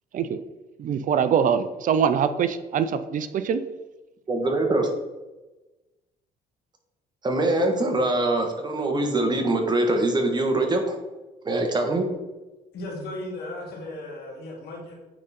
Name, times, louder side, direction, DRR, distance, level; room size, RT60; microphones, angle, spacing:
voice 1, 0.8-3.6, right 7 dB, 50° right, 11 dB, 0.5 m, -23 dB
voice 2, 4.3-4.9 7.2-11.0 11.4-12.1, right 2 dB, 25° right, 3 dB, 1.4 m, -23 dB
voice 3, 12.7-14.9, left 1 dB, 75° left, -1 dB, 2.3 m, -36 dB
9.0 x 3.8 x 4.3 m, 1.1 s
cardioid pair, 110°, 17 cm